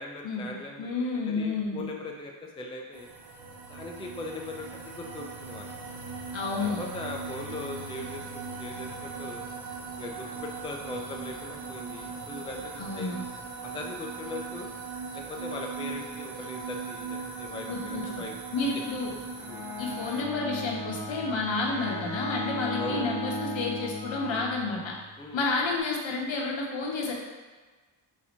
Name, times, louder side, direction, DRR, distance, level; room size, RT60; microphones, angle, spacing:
voice 1, 0.0-3.1 3.7-5.7 6.6-9.4 10.0-13.1 13.6-14.7 15.1-18.6 19.5-19.6 22.8-23.1 25.2-25.4, left 2 dB, 10° left, 1 dB, 0.4 m, -40 dB
voice 2, 0.8-1.8 6.3-6.8 12.8-13.1 17.7-18.0 18.5-19.1 19.8-24.9 25.3-27.1, left 3 dB, 70° left, -1 dB, 0.9 m, -30 dB
sound 1, 2.9-20.2, right 4 dB, 50° right, 0.6 m, -39 dB
Bowed string instrument, 19.3-25.1, left 2 dB, 40° left, 0.9 m, -36 dB
4.1 x 2.3 x 4.3 m, 1.3 s
cardioid pair, 80°, 48 cm